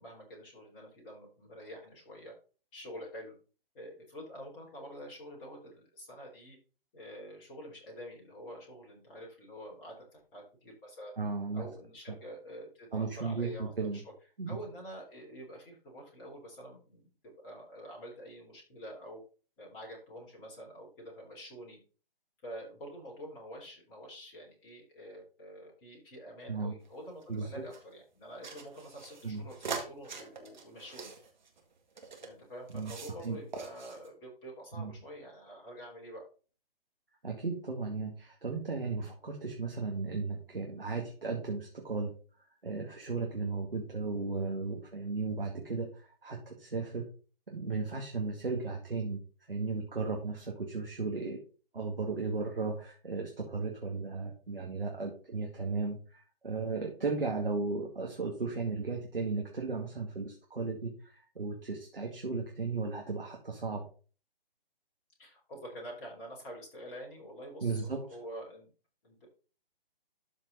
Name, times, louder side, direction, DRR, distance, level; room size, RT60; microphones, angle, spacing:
voice 1, 0.0-2.3 2.7-3.3 3.7-6.6 6.9-11.1 11.5-14.0 14.5-19.2 19.6-21.8 22.4-31.1 32.2-36.2 65.2-68.7 69.0-69.3, equal, 20° left, -2 dB, 3.5 m, -47 dB
voice 2, 11.2-11.6 12.9-14.0 14.4-14.6 26.5-26.7 27.3-27.6 29.2-29.4 32.7-32.9 33.2-33.4 34.8-34.9 37.2-42.1 42.6-47.0 47.5-49.2 49.5-51.4 51.7-63.8 67.6-68.0, right 4 dB, 70° right, 0 dB, 2.2 m, -35 dB
sound 1, 26.8-27.8 28.4-32.3 32.7-33.3 33.5-34.1, right 5 dB, 50° right, 2.0 m, -43 dB
12.5 x 4.5 x 4.1 m, 0.37 s
figure-of-eight pair, 140°, 29 cm